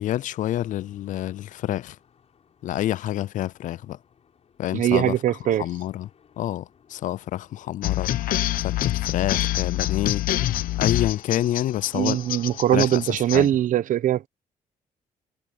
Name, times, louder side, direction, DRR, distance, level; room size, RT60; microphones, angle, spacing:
voice 1, 0.0-2.0 2.6-4.0 4.6-5.1 5.6-6.1 6.4-8.1 8.6-10.2 10.8-12.2 12.7-13.0 13.3-13.5, left 13 dB, 65° left, 0.4 m, -28 dB
sound 1, 0.6-13.7, left 7 dB, 50° left, 7.3 m, -54 dB
voice 2, 4.7-5.6 11.9-14.3, right 12 dB, 70° right, 0.9 m, -21 dB
sound 2, 7.8-13.4, left 14 dB, 80° left, 1.0 m, -26 dB
cardioid pair, 120°, 14 cm